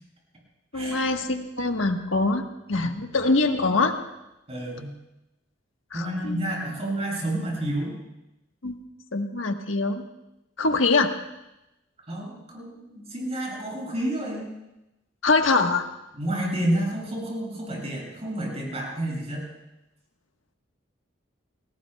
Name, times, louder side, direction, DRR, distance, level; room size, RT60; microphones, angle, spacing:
voice 1, 0.7-4.0 5.9-6.4 8.6-8.8 9.1-10.0 10.6-11.1 15.2-15.8, left 3 dB, 90° left, 4 dB, 1.4 m, -23 dB
voice 2, 4.5-5.0 5.9-7.9 12.1-14.5 16.1-19.5, right 1 dB, 35° right, -2 dB, 7.1 m, -30 dB
30.0 x 19.5 x 2.3 m, 0.93 s
head